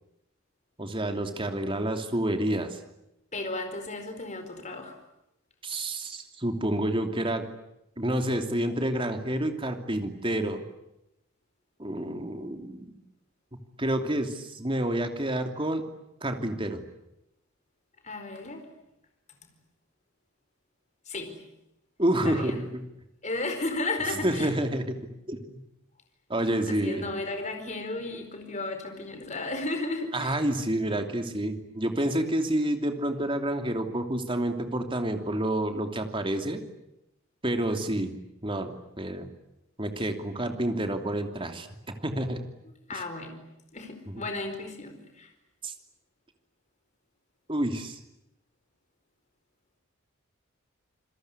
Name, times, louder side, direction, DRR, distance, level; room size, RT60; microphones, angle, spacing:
voice 1, 0.8-2.8 5.6-7.5 8.0-10.6 11.8-13.0 13.8-15.8 16.2-16.8 22.0-22.8 24.2-25.6 26.3-27.1 30.1-36.6 37.4-38.1 38.4-39.3 39.8-42.4 42.9-43.0 44.1-44.2 45.6-45.7 47.5-48.0, right 1 dB, 25° right, 6 dB, 2.9 m, -29 dB
voice 2, 3.3-4.9 18.0-18.6 21.1-21.4 22.2-22.7 23.2-24.5 26.7-30.4 42.9-45.3, left 2 dB, 35° left, 6 dB, 4.7 m, -34 dB
28.0 x 21.5 x 9.8 m, 0.86 s
head